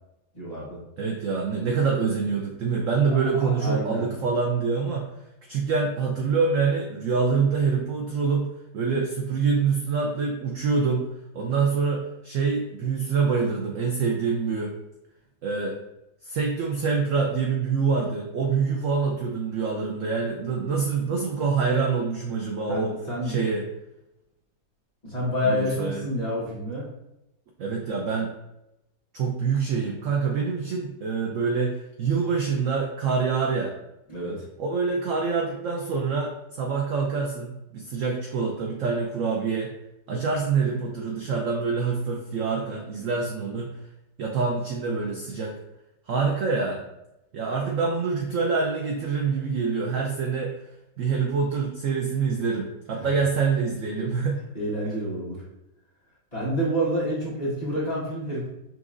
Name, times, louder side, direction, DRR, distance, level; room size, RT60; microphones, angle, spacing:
voice 1, 0.3-0.8 3.2-4.1 22.7-23.4 25.0-26.9 34.1-34.4 52.9-53.1 54.5-55.4 56.3-58.5, equal, 25° left, -8 dB, 1.2 m, -28 dB
voice 2, 1.0-5.1 5.5-8.5 8.7-11.1 11.3-14.7 15.4-15.8 16.2-22.9 23.2-23.7 25.4-26.0 27.6-28.3 29.1-33.7 34.6-39.7 40.1-43.7 44.2-45.6 46.1-46.8 47.3-50.6 51.0-54.4, right 5 dB, 70° right, 1 dB, 0.7 m, -25 dB
5.7 x 2.7 x 2.5 m, 0.90 s
omnidirectional pair, 1.8 m